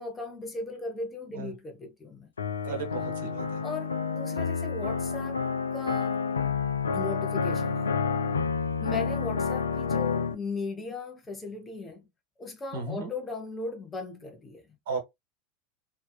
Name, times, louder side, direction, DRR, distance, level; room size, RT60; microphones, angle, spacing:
voice 1, 0.0-2.3 2.7-2.8 3.6-5.4 5.7-6.2 6.9-7.9 8.8-12.1 12.4-14.8, left 3 dB, 20° left, 0.7 m, -37 dB
sound 1, 2.4-10.3, left 5 dB, 85° left, 0.3 m, -29 dB
voice 2, 2.6-3.6 12.7-13.1 14.9-15.0, right 4 dB, 60° right, 1.2 m, -34 dB
2.7 x 2.2 x 2.3 m
figure-of-eight pair, 85°, 0 cm